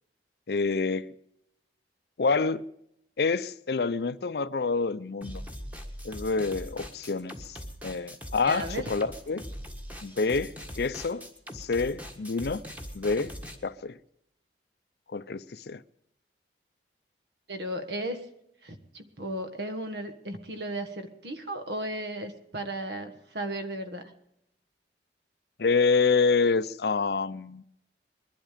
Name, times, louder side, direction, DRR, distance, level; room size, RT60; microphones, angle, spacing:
voice 1, 0.5-1.1 2.2-2.6 3.2-5.4 6.0-7.6 7.8-9.4 10.0-11.3 11.5-12.6 12.9-13.3 13.6-14.0 15.1-15.8 25.6-27.6, left 4 dB, 60° left, 0.5 m, -27 dB
sound 1, 5.2-13.6, equal, 10° right, 1.5 m, -41 dB
voice 2, 8.4-8.8 17.5-18.2 18.6-24.1, right 1 dB, 65° right, 1.6 m, -35 dB
21.0 x 12.0 x 5.0 m
head